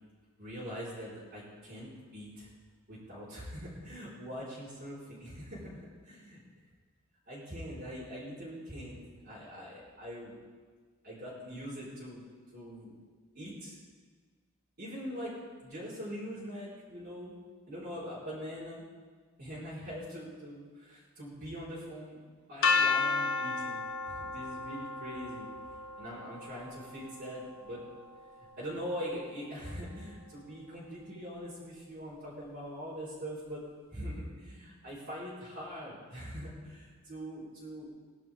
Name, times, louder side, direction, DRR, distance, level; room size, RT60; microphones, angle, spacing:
voice 1, 0.4-2.5 2.9-5.7 6.0-6.4 7.3-9.0 9.2-10.3 11.0-12.2 12.5-12.9 13.3-13.8 14.8-17.4 17.7-18.8 19.4-22.2 22.5-25.5 26.0-27.8 28.4-33.6 33.9-37.9, equal, 50° right, -11 dB, 5.0 m, -42 dB
sound 1, 22.6-28.5, left 4 dB, 70° left, 1.4 m, -33 dB
20.5 x 11.5 x 3.8 m, 1.5 s
head